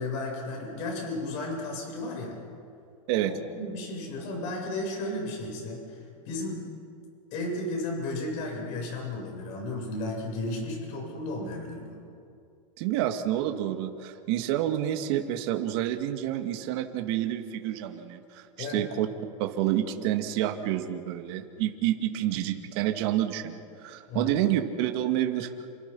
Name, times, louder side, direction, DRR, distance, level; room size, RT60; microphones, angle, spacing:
voice 1, 0.0-2.4 3.5-6.6 7.3-12.0 18.6-18.8 24.1-24.4, left 2 dB, 40° left, 0 dB, 7.7 m, -34 dB
voice 2, 12.8-19.1 19.4-25.5, right 12 dB, 50° right, 5 dB, 2.3 m, -28 dB
29.0 x 26.5 x 5.6 m, 2.4 s
supercardioid pair, 150°, 18 cm